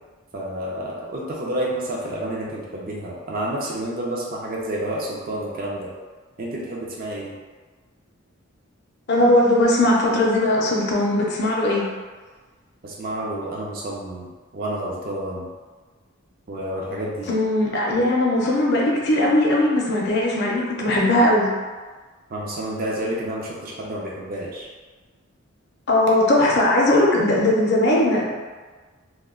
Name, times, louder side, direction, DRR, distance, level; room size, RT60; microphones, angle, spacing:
voice 1, 0.3-5.9 6.4-7.3 12.8-15.5 16.5-17.3 22.3-24.7, right 1 dB, 45° right, -4 dB, 0.4 m, -29 dB
voice 2, 9.1-11.9 17.3-21.5 25.9-28.2, left 1 dB, 50° left, -3 dB, 0.5 m, -19 dB
2.2 x 2.2 x 3.5 m, 1.4 s
head